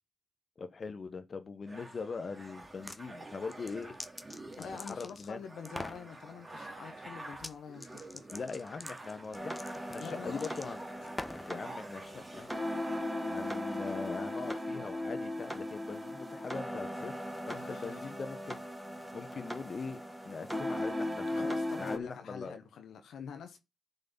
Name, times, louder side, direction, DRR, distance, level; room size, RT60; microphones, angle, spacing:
voice 1, 0.6-3.9 4.6-5.4 8.3-10.8 11.5-12.5 13.2-17.2 17.5-18.6 19.1-21.5 21.8-22.5, left 4 dB, 50° left, 1.0 m, -41 dB
sound 1, 1.7-13.0, right 2 dB, 25° right, 2.3 m, -49 dB
sound 2, 2.6-3.0 3.5-5.3 5.6-6.0 7.3-7.5 7.8-11.5, left 2 dB, 20° left, 0.8 m, -44 dB
voice 2, 4.6-8.3 10.0-10.6 17.5-18.1 21.3-23.6, left 6 dB, 75° left, 1.2 m, -46 dB
sound 3, 9.3-22.0, left 1 dB, 10° right, 2.3 m, -38 dB
11.0 x 3.8 x 5.4 m
supercardioid pair, 45°, 0 cm